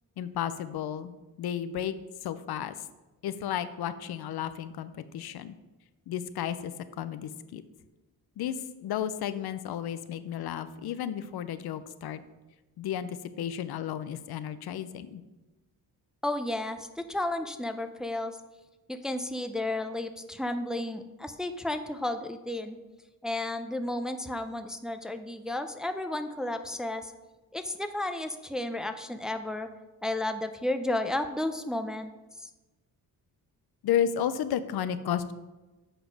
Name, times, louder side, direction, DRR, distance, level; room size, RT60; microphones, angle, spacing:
voice 1, 0.2-1.1 1.4-2.0 2.2-2.8 3.2-5.5 6.1-6.7 7.0-7.6 8.4-8.5 8.8-12.2 12.8-15.2 33.8-35.3, left 9 dB, 80° left, 13 dB, 0.6 m, -32 dB
voice 2, 16.2-18.4 18.9-22.8 23.2-27.1 27.5-29.7 30.0-32.1 32.4-32.5, left 1 dB, ahead, 8 dB, 0.4 m, -32 dB
7.4 x 5.0 x 5.2 m, 1.1 s
cardioid pair, 95°, 37 cm